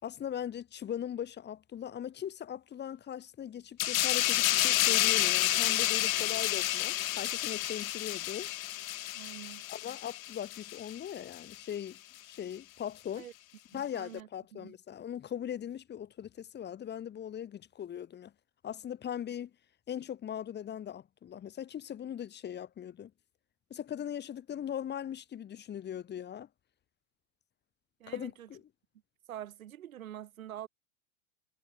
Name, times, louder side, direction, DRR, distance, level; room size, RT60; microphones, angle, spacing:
voice 1, 0.0-8.5 9.7-13.3 13.7-18.3 18.6-19.5 19.9-23.1 23.7-26.5 28.1-28.6, left 9 dB, 25° left, 4.7 m, -40 dB
sound 1, 3.8-11.0 11.3-11.5, left 15 dB, 75° left, 1.0 m, -30 dB
voice 2, 9.1-9.6 13.2-13.3 13.7-14.8 28.0-28.5 29.3-30.7, right 11 dB, 80° right, 5.3 m, -46 dB
hypercardioid pair, 125°, 41 cm